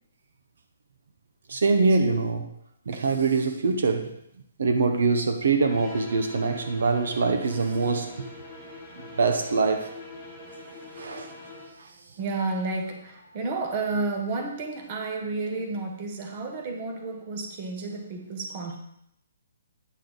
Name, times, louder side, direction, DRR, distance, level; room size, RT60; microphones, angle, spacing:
voice 1, 1.5-2.5 2.9-4.1 4.6-8.3 9.2-9.9 11.0-11.3, right 4 dB, 70° right, 7 dB, 0.9 m, -24 dB
sound 1, 5.6-11.8, left 2 dB, ahead, 3.1 m, -43 dB
voice 2, 12.2-18.8, right 3 dB, 25° right, 4 dB, 1.0 m, -31 dB
9.1 x 6.5 x 4.0 m, 0.76 s
hypercardioid pair, 175°, 0 cm